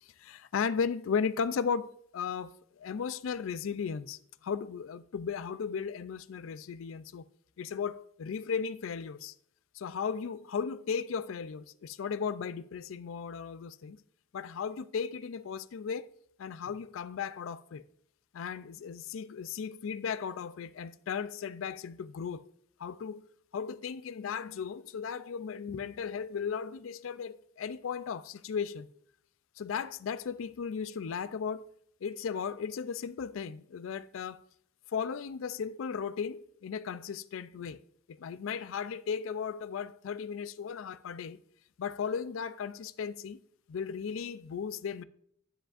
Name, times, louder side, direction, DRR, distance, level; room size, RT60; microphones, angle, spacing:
voice 1, 0.2-7.2 7.6-9.3 9.8-14.0 14.3-16.1 16.4-17.8 18.3-22.5 22.8-23.2 23.5-28.9 29.6-31.7 32.0-34.4 34.9-37.8 38.2-41.4 41.8-43.4 43.7-45.0, left 6 dB, 85° left, 0.4 m, -36 dB
10.0 x 9.9 x 2.5 m
head